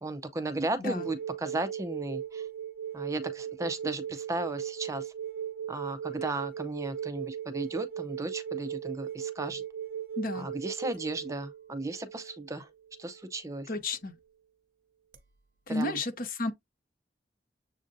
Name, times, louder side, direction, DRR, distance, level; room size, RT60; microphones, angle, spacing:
voice 1, 0.0-2.5 2.9-5.1 5.7-9.6 10.3-12.7 13.0-13.7 15.7-16.0, right 2 dB, 20° right, 0.4 m, -35 dB
sound 1, 0.9-13.4 15.1-15.2, right 9 dB, 55° right, 0.8 m, -38 dB
voice 2, 10.2-10.5 13.7-14.2 15.7-16.5, left 2 dB, 55° left, 0.9 m, -32 dB
7.2 x 2.5 x 2.6 m
head